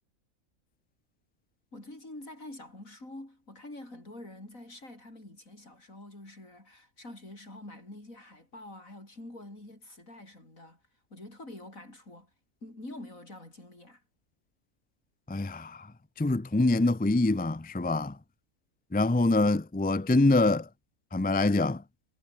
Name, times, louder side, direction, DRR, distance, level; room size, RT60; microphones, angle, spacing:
voice 1, 1.7-10.8 11.1-12.3 12.6-14.0, left 1 dB, 75° left, 8.5 m, -46 dB
voice 2, 15.3-15.9 16.2-18.2 18.9-20.7 21.1-21.8, left 2 dB, 10° left, 0.4 m, -25 dB
omnidirectional pair, 1.4 m